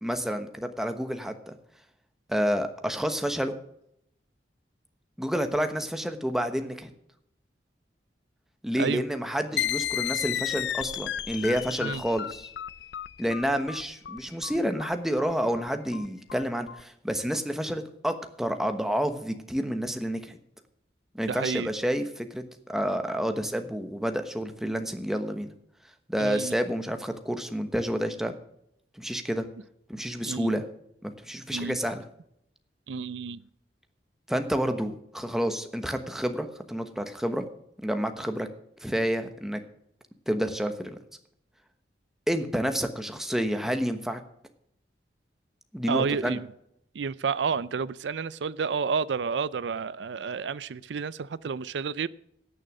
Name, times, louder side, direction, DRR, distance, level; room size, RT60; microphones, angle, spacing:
voice 1, 0.0-1.5 2.3-3.5 5.2-6.9 8.6-12.5 13.2-20.4 21.1-22.4 22.7-25.5 26.1-28.3 29.0-29.5 29.9-30.6 31.0-32.0 34.3-37.4 37.8-38.5 38.8-39.6 40.3-41.0 42.3-44.2 45.7-46.4, equal, ahead, 7 dB, 1.1 m, -29 dB
sound 1, 9.6-16.8, left 10 dB, 75° left, 0.4 m, -33 dB
voice 2, 21.3-21.7 26.2-26.5 30.3-30.5 31.5-31.8 32.9-33.4 45.9-46.5 46.9-52.1, right 5 dB, 90° right, 19 dB, 0.5 m, -30 dB
17.5 x 6.6 x 6.1 m, 0.74 s
head